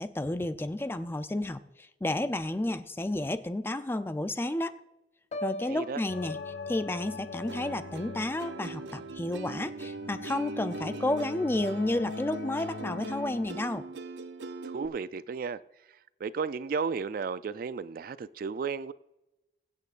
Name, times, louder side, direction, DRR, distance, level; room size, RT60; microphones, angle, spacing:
voice 1, 0.0-4.8 5.4-6.4 6.7-13.8, left 1 dB, 15° left, 0.4 m, -31 dB
Piano, 5.3-9.3 9.7-10.0, left 1 dB, 40° left, 0.8 m, -44 dB
voice 2, 5.7-6.0 14.6-15.6 16.2-18.9, right 5 dB, 55° right, 0.3 m, -33 dB
sound 1, 6.1-13.5, left 4 dB, 75° left, 0.5 m, -42 dB
Plucked string instrument, 7.5-14.9, right 4 dB, 90° right, 0.7 m, -41 dB
22.5 x 8.4 x 2.5 m
head